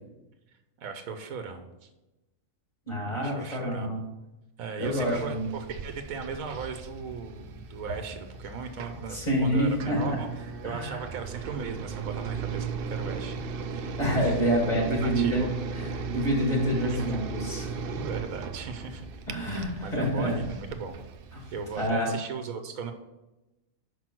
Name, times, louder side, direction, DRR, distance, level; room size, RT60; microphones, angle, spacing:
voice 1, 0.8-1.9 3.1-4.0 4.6-13.4 13.7-15.5 16.7-17.2 17.9-19.1 19.4-21.0 21.5-22.9, right 5 dB, 85° right, 7 dB, 1.2 m, -38 dB
voice 2, 2.9-4.0 4.8-5.5 9.1-10.2 10.6-11.0 14.0-15.5 15.7-17.9 19.3-20.4 21.3-21.4 21.8-22.1, equal, 30° left, -3 dB, 2.1 m, -27 dB
sound 1, 4.8-21.9, right 4 dB, 60° right, 0.6 m, -37 dB
6.1 x 5.1 x 6.0 m, 1.0 s
omnidirectional pair, 1.4 m